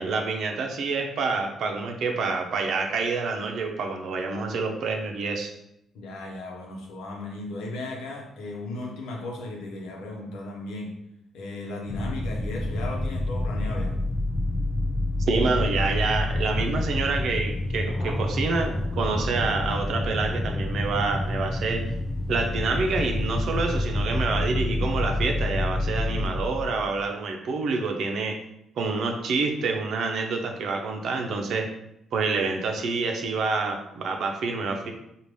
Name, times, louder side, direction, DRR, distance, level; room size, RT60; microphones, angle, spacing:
voice 1, 0.0-5.5 15.3-21.9 22.3-28.4 28.8-31.7 32.1-34.9, right 4 dB, 70° right, 3 dB, 0.6 m, -27 dB
voice 2, 5.9-10.9 11.3-14.0, left 2 dB, 90° left, 0 dB, 0.9 m, -36 dB
sound 1, 11.9-27.0, left 1 dB, 10° left, 0.4 m, -28 dB
Thunder, 17.9-24.9, left 2 dB, 50° left, 0.7 m, -44 dB
5.2 x 2.4 x 3.2 m, 0.82 s
cardioid pair, 90°, 0 cm